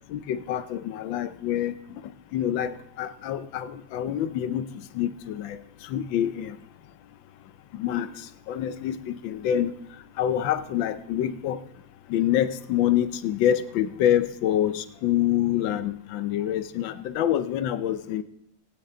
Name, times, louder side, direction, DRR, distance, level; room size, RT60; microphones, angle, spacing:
voice 1, 0.1-1.7 2.3-4.7 4.9-5.6 5.9-6.6 7.7-8.1 8.5-9.7 10.2-11.6 12.1-18.2, left 11 dB, 75° left, 13 dB, 1.4 m, -26 dB
19.0 x 9.0 x 3.8 m, 0.79 s
omnidirectional pair, 2.2 m